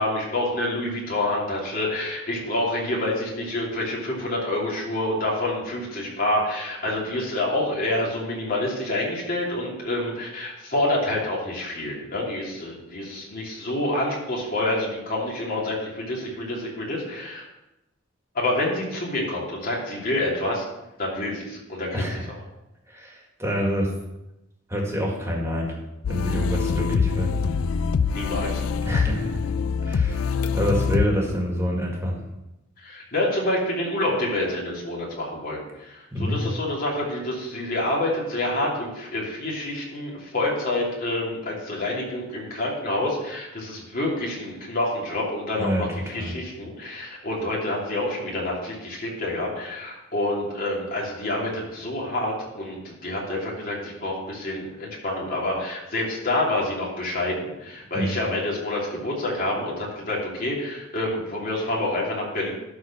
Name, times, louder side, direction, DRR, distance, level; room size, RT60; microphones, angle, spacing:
voice 1, 0.0-17.4 18.3-20.6 21.0-22.0 28.1-28.6 32.8-62.5, left 1 dB, 45° left, -3 dB, 2.8 m, -27 dB
voice 2, 21.9-22.3 22.9-23.9 24.7-25.8 26.1-27.3 28.8-29.5 29.8-32.2 36.1-36.4 45.6-46.4 57.9-58.1, equal, 15° right, -1 dB, 1.9 m, -27 dB
sound 1, 26.0-31.1, left 5 dB, 80° left, 0.4 m, -24 dB
11.5 x 4.4 x 6.0 m, 0.94 s
head